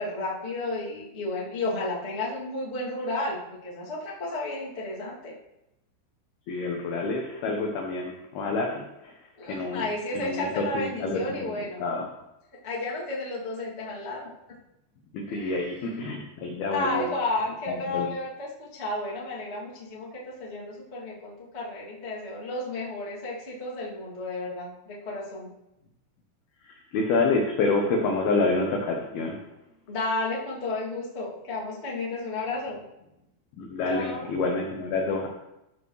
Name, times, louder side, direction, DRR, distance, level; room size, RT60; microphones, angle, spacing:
voice 1, 0.0-5.3 9.4-11.8 12.6-14.3 15.3-15.5 15.8-15.9 16.7-25.5 29.9-32.8 33.9-34.3, left 2 dB, 35° left, -6 dB, 1.0 m, -32 dB
voice 2, 6.5-9.1 9.5-9.8 10.1-11.5 11.8-12.1 15.1-17.1 17.7-18.1 26.6-29.4 33.6-35.3, left 3 dB, 85° left, 1 dB, 2.1 m, -28 dB
13.5 x 7.2 x 3.2 m, 0.88 s
omnidirectional pair, 5.9 m